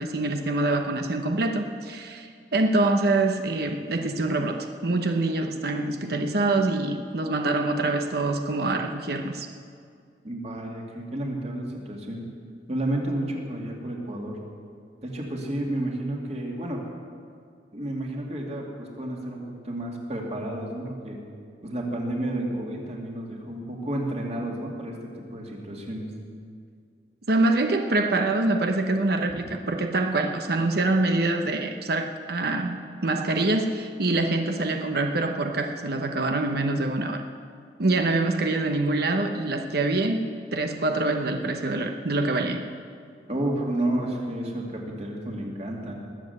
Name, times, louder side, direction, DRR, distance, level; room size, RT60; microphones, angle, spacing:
voice 1, 0.0-9.5 27.3-37.2 37.8-40.3 40.5-42.6, right 2 dB, 60° right, 5 dB, 1.0 m, -25 dB
voice 2, 10.2-12.2 12.7-14.4 15.0-16.8 17.7-21.2 21.6-26.1 29.3-29.4 43.3-45.9, right 1 dB, 40° right, -1 dB, 2.6 m, -31 dB
20.0 x 7.6 x 8.0 m, 2.2 s
head